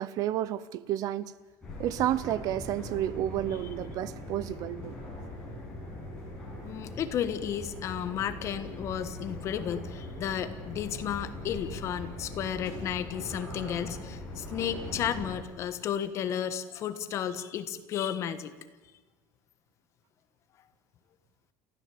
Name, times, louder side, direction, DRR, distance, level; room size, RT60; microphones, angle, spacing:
voice 1, 0.0-1.3 1.8-4.9, right 12 dB, 45° right, 0.7 m, -31 dB
sound 1, 1.6-15.3, left 1 dB, 10° left, 8.0 m, -41 dB
voice 2, 6.6-18.5, left 9 dB, 35° left, 1.4 m, -33 dB
29.5 x 15.5 x 8.6 m
cardioid pair, 180°, 8 cm